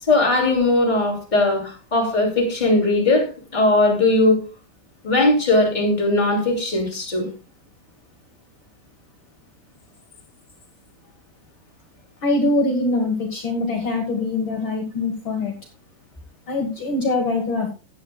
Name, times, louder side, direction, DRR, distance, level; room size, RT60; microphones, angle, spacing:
voice 1, 0.0-4.4 5.0-7.3, left 2 dB, 15° left, 0 dB, 2.5 m, -19 dB
voice 2, 12.2-15.5 16.5-17.7, left 2 dB, 60° left, 2 dB, 1.3 m, -23 dB
15.5 x 10.0 x 2.3 m, 0.31 s
omnidirectional pair, 4.3 m